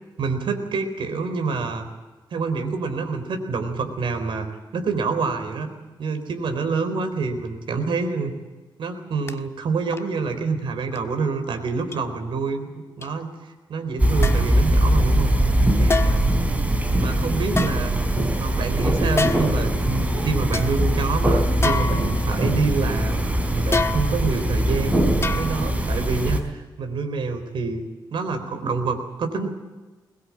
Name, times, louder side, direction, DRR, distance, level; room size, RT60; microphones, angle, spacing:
voice 1, 0.2-1.9 2.3-4.5 4.7-5.7 6.0-8.3 8.8-12.7 13.0-15.3 15.8-16.2 16.9-17.9 18.4-23.2 23.6-25.0 25.4-27.8 28.1-29.5, right 4 dB, 75° right, 7 dB, 4.0 m, -27 dB
sound 1, 9.3-9.4 9.9-10.2 10.9-11.0 11.9-12.0 13.0-13.1 14.2-14.6 15.9-16.4 17.5-18.4 19.2-19.7 20.1-20.2 20.5-20.7 21.6-22.5 23.7-24.4 25.2-25.8 26.1-26.2, left 4 dB, 30° left, 1.4 m, -27 dB
sound 2, 14.0-26.4, right 1 dB, 15° right, 4.2 m, -21 dB
22.0 x 21.0 x 8.6 m, 1.2 s
cardioid pair, 105°, 9 cm